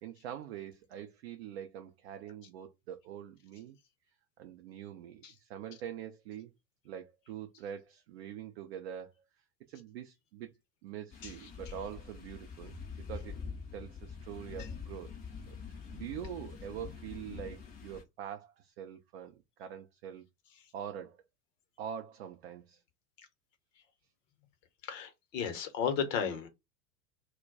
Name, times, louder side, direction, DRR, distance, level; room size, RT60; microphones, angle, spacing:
voice 1, 0.0-3.8 4.4-6.5 6.8-9.1 9.7-10.5 10.8-12.8 13.1-13.4 13.7-15.1 15.5-20.2 20.7-21.2 21.8-22.8, right 9 dB, 45° right, 0.4 m, -44 dB
sound 1, 11.1-18.0, left 5 dB, 20° left, 0.5 m, -45 dB
voice 2, 24.8-26.5, left 7 dB, 50° left, 0.9 m, -33 dB
2.2 x 2.2 x 3.8 m
figure-of-eight pair, 85°, 49 cm